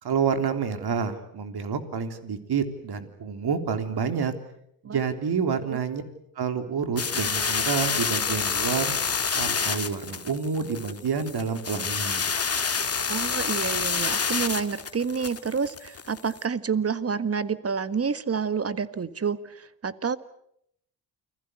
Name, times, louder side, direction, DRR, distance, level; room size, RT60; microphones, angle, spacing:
voice 1, 0.0-4.3 4.8-6.0 6.4-8.9 9.4-12.3, right 6 dB, 50° right, 8 dB, 3.6 m, -28 dB
sound 1, 7.0-16.4, left 5 dB, 30° left, 2.0 m, -28 dB
voice 2, 13.1-20.2, right 6 dB, 30° right, 15 dB, 1.6 m, -28 dB
29.5 x 21.0 x 8.1 m, 0.73 s
hypercardioid pair, 50°, 49 cm